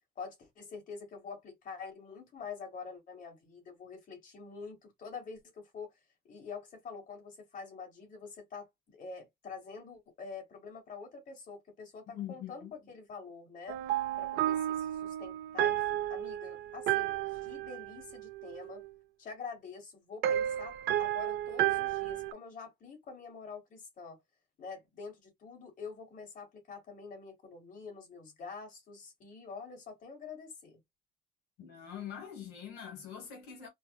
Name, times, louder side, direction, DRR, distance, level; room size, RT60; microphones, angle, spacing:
voice 1, 0.2-6.0 6.3-13.8 14.2-18.8 19.2-24.2 24.6-30.8, left 5 dB, 50° left, 1.8 m, -46 dB
voice 2, 12.1-12.7 31.6-33.7, left 9 dB, 85° left, 1.3 m, -43 dB
sound 1, 13.7-18.9 20.2-22.3, right 12 dB, 80° right, 0.5 m, -32 dB
4.5 x 2.1 x 2.3 m
cardioid pair, 110°, 17 cm